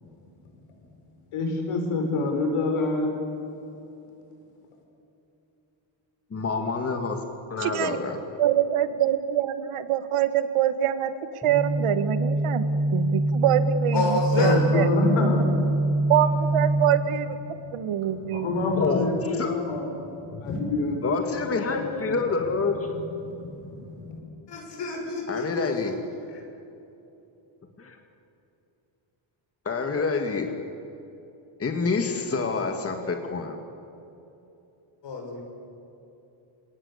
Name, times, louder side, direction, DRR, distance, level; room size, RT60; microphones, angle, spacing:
voice 1, 1.3-3.2 14.4-16.1 17.5-17.6 18.0-22.3 23.2-24.2, left 3 dB, 90° left, 3 dB, 5.6 m, -28 dB
voice 2, 6.3-7.2 7.5-8.2 18.8-19.5 21.0-22.7 25.3-25.9 27.8-28.0 29.7-30.5 31.6-33.6, left 4 dB, 30° left, 4 dB, 2.0 m, -27 dB
voice 3, 7.6-8.0 8.4-12.6 12.9-15.3 16.1-18.5, right 10 dB, 90° right, 11 dB, 1.7 m, -25 dB
sound 1, 11.4-17.0, right 2 dB, ahead, 6.5 m, -24 dB
voice 4, 13.9-14.7 24.5-25.7 26.3-26.4 32.3-32.5 35.0-35.4, left 3 dB, 55° left, 2 dB, 6.5 m, -28 dB
27.5 x 18.5 x 8.5 m, 2.9 s
cardioid pair, 145°, 49 cm